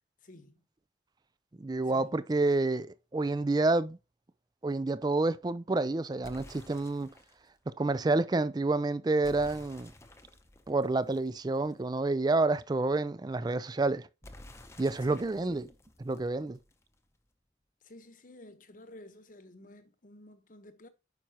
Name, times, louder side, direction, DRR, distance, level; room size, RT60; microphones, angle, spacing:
voice 1, 0.2-0.6 1.9-2.1 15.1-15.3 17.8-20.9, left 1 dB, 45° left, 1.0 m, -52 dB
voice 2, 1.6-4.0 4.6-7.1 7.7-9.9 10.7-14.1 14.8-15.7 16.0-16.6, right 2 dB, 20° right, 0.4 m, -29 dB
sound 1, 6.2-7.5 9.2-12.0 14.2-17.0, left 1 dB, 15° left, 0.7 m, -53 dB
9.3 x 5.6 x 2.9 m
head